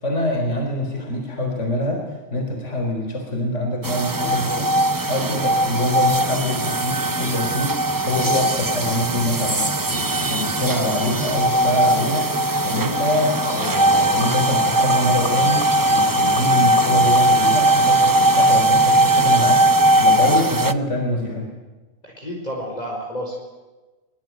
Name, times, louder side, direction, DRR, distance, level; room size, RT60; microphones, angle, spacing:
voice 1, 0.0-4.7 5.1-21.5, left 1 dB, 55° left, 2 dB, 4.4 m, -25 dB
sound 1, 3.8-20.7, right 1 dB, 20° right, 0.6 m, -19 dB
sound 2, 12.5-18.6, left 1 dB, 90° left, 3.7 m, -31 dB
voice 2, 22.0-23.4, equal, 30° left, -2 dB, 4.9 m, -30 dB
24.0 x 23.5 x 9.4 m, 1.2 s
omnidirectional pair, 1.4 m